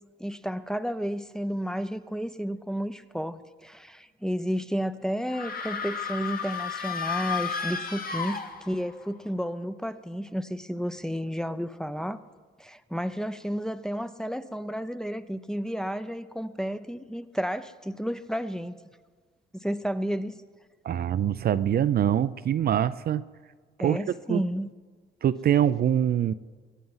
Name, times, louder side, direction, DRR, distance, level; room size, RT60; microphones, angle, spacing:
voice 1, 0.2-12.2 12.6-18.8 19.5-20.3 23.8-24.7, equal, 5° left, 11 dB, 0.6 m, -32 dB
sound 1, 5.3-9.0, left 6 dB, 45° left, 1.6 m, -33 dB
voice 2, 20.8-23.2 23.8-24.0 24.3-24.4 25.2-26.3, right 10 dB, 50° right, 14 dB, 0.5 m, -24 dB
23.0 x 9.2 x 5.7 m, 1.5 s
cardioid pair, 90°, 20 cm